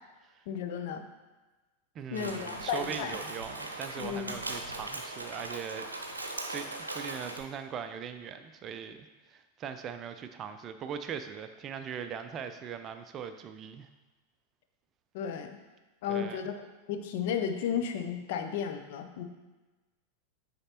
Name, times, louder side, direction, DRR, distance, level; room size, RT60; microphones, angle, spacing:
voice 1, 0.5-1.0 2.1-3.2 4.0-4.4 15.1-15.6 16.0-16.6 16.9-19.2, left 7 dB, 50° left, 6 dB, 0.6 m, -33 dB
voice 2, 2.0-5.8 6.5-13.9 16.1-16.4, right 7 dB, 30° right, 9 dB, 0.4 m, -40 dB
sound 1, 2.1-7.4, right 2 dB, 80° right, 0.7 m, -39 dB
9.6 x 4.2 x 2.9 m, 1.2 s
figure-of-eight pair, 90°, 0 cm